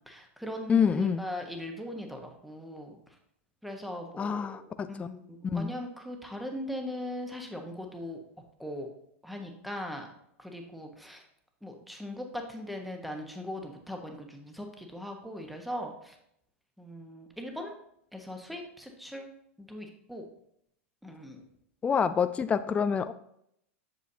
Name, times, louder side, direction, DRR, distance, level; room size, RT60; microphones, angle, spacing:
voice 1, 0.1-3.0 3.6-8.2 8.6-8.9 9.2-10.1 10.4-11.2 11.6-16.2 16.8-17.7 18.1-19.3 19.6-20.2 21.0-21.4, left 1 dB, ahead, 3 dB, 1.2 m, -39 dB
voice 2, 0.7-1.2 4.2-5.1 5.4-5.7 21.8-23.1, left 6 dB, 15° left, 11 dB, 0.3 m, -27 dB
8.2 x 6.3 x 2.8 m, 0.74 s
hypercardioid pair, 105°, 7 cm